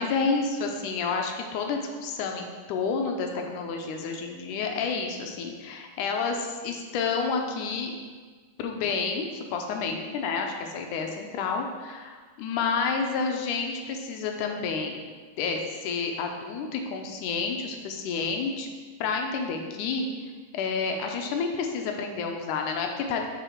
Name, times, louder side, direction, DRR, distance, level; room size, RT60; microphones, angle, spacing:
voice 1, 0.0-7.9 8.6-15.0 15.4-18.7 19.0-20.1 20.5-23.2, left 5 dB, 85° left, 3 dB, 2.2 m, -30 dB
7.0 x 4.9 x 4.4 m, 1.5 s
omnidirectional pair, 3.6 m